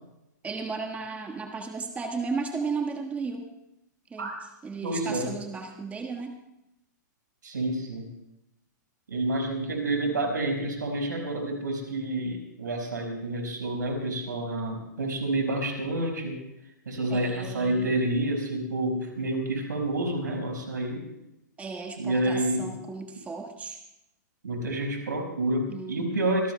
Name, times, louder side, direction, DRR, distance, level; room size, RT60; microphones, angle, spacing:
voice 1, 0.4-3.4 4.1-4.3 4.6-6.3 17.1-17.9 21.6-23.8 25.7-26.1, right 4 dB, 15° right, 3 dB, 1.5 m, -34 dB
voice 2, 4.8-5.4 7.4-8.1 9.1-16.4 16.9-21.0 22.0-22.8 24.4-26.5, right 1 dB, 80° right, 1 dB, 5.2 m, -29 dB
26.5 x 18.0 x 2.2 m, 0.86 s
hypercardioid pair, 120°, 10 cm